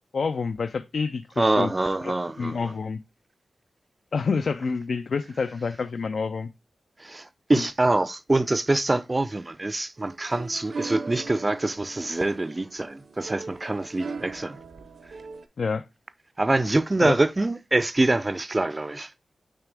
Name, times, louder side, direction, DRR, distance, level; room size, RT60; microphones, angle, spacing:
voice 1, 0.1-1.7 2.0-3.0 4.1-6.5 7.5-7.6 15.6-15.9 17.0-17.2, left 5 dB, 55° left, 0.4 m, -28 dB
voice 2, 1.4-2.6 7.0-14.6 16.4-19.1, right 2 dB, 20° right, 0.4 m, -25 dB
sound 1, 10.0-15.5, right 4 dB, 65° right, 0.7 m, -39 dB
8.9 x 3.4 x 3.4 m
wide cardioid pair, 165°, 0 cm